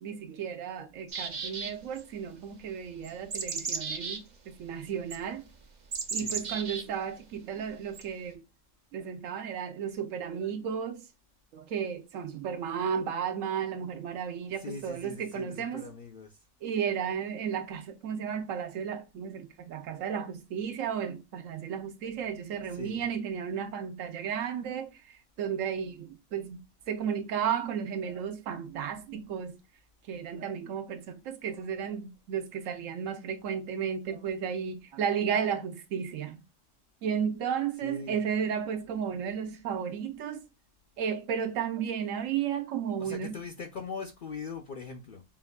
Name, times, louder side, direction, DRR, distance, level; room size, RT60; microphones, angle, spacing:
voice 1, 0.0-5.5 6.1-8.4 8.9-11.1 11.5-15.9 16.6-25.0 25.4-26.6 26.9-29.6 30.1-36.4 37.0-40.4 41.0-43.4, right 7 dB, 90° right, 1.1 m, -33 dB
sound 1, 1.1-2.0 3.0-4.2 5.1-5.2 5.9-6.8 7.9-8.0, right 5 dB, 45° right, 0.6 m, -34 dB
voice 2, 6.1-6.4 14.6-16.4 22.7-23.0 37.8-38.2 43.0-45.2, left 4 dB, 55° left, 0.6 m, -41 dB
7.0 x 2.4 x 2.2 m
omnidirectional pair, 1.3 m